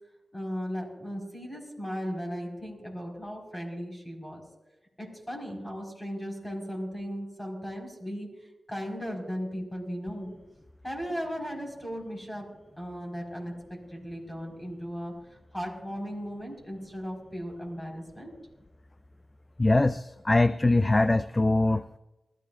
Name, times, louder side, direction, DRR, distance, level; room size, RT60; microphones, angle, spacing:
voice 1, 0.3-4.4 5.0-10.3 10.8-12.5 12.8-15.1 15.5-18.3, equal, 10° left, 0 dB, 4.8 m, -36 dB
voice 2, 19.6-22.0, left 2 dB, 25° left, 12 dB, 0.4 m, -23 dB
21.5 x 14.5 x 2.5 m, 1.0 s
cardioid pair, 65°, 0 cm